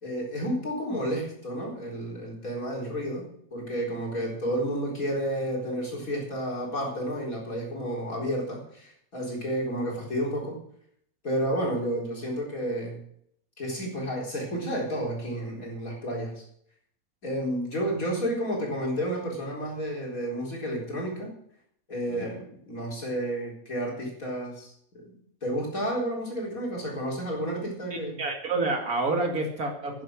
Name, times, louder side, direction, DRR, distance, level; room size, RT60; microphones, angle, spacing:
voice 1, 0.0-10.6 11.2-13.0 13.6-16.4 17.2-21.3 21.9-25.1 25.4-28.3, equal, 70° left, -2 dB, 4.6 m, -31 dB
voice 2, 27.9-30.0, right 3 dB, 80° right, 2 dB, 2.8 m, -29 dB
11.0 x 10.5 x 6.5 m, 0.68 s
omnidirectional pair, 1.5 m